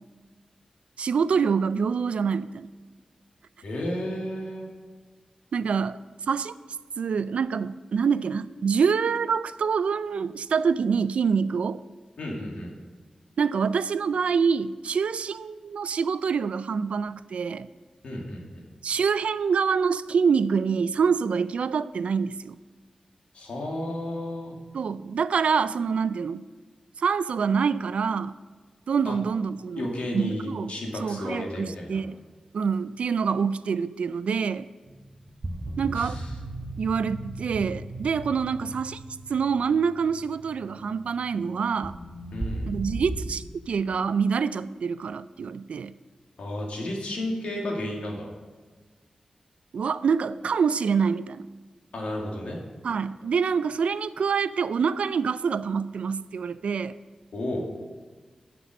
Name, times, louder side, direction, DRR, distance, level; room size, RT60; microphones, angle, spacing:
voice 1, 1.0-2.7 5.5-6.0 6.3-6.5 7.0-11.8 13.4-17.7 18.8-22.5 24.7-26.4 27.0-28.3 28.9-29.9 30.1-30.7 31.0-32.2 32.5-34.7 35.8-36.2 36.8-39.0 39.3-42.0 42.7-45.9 49.7-51.5 52.8-57.0, right 6 dB, 80° right, 15 dB, 0.4 m, -26 dB
voice 2, 3.6-4.7 12.2-12.7 18.0-18.6 23.3-24.6 29.1-29.2 29.8-32.0 35.9-36.3 42.3-42.7 46.4-48.3 51.9-52.6 57.3-57.7, left 1 dB, 90° left, -1 dB, 2.1 m, -32 dB
sound 1, 34.9-43.3, right 1 dB, 35° right, 1.1 m, -37 dB
11.0 x 6.0 x 6.3 m, 1.4 s
wide cardioid pair, 150°, 2 cm